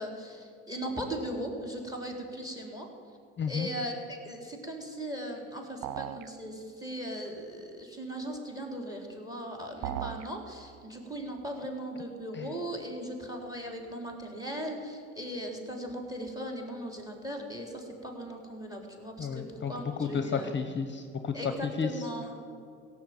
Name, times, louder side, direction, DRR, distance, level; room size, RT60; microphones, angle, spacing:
voice 1, 0.0-2.9 3.5-20.5 21.3-22.4, equal, 10° right, 3 dB, 4.0 m, -38 dB
voice 2, 3.4-3.7 12.3-12.5 19.2-22.1, left 5 dB, 35° left, 8 dB, 1.1 m, -32 dB
sound 1, 5.8-6.3 9.8-10.3, right 12 dB, 70° right, 0.6 m, -36 dB
16.5 x 7.5 x 9.4 m, 2.5 s
hypercardioid pair, 60°, 34 cm